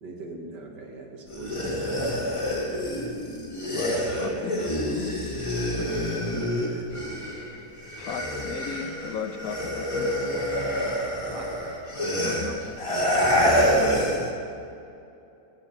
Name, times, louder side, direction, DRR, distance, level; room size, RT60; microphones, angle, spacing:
voice 1, 0.0-2.3 3.9-4.6 5.6-6.9 11.3-11.5 12.0-12.2 13.7-14.3, right 2 dB, 85° right, 1 dB, 1.9 m, -40 dB
sound 1, 1.3-7.5 7.8-14.3, equal, 20° left, 1.2 m, -27 dB
voice 2, 3.7-6.4 8.0-10.3 12.2-12.6, left 6 dB, 70° left, 8 dB, 1.0 m, -36 dB
14.0 x 7.6 x 4.3 m, 2.6 s
omnidirectional pair, 1.8 m